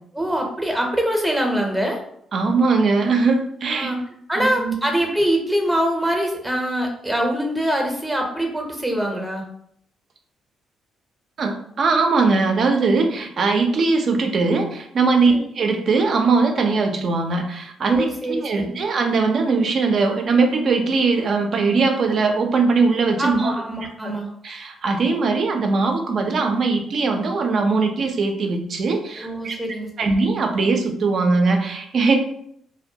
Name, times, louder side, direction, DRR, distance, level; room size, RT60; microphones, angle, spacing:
voice 1, 0.2-2.0 3.7-4.0 4.3-9.4 15.2-15.5 17.9-18.8 23.2-24.3 29.2-30.1, equal, 10° right, 1 dB, 0.6 m, -24 dB
voice 2, 2.3-3.9 4.4-4.7 11.4-23.5 24.0-24.1 24.4-29.6 30.0-32.2, right 4 dB, 55° right, 4 dB, 0.4 m, -20 dB
2.2 x 2.1 x 2.6 m, 0.69 s
cardioid pair, 90°, 0 cm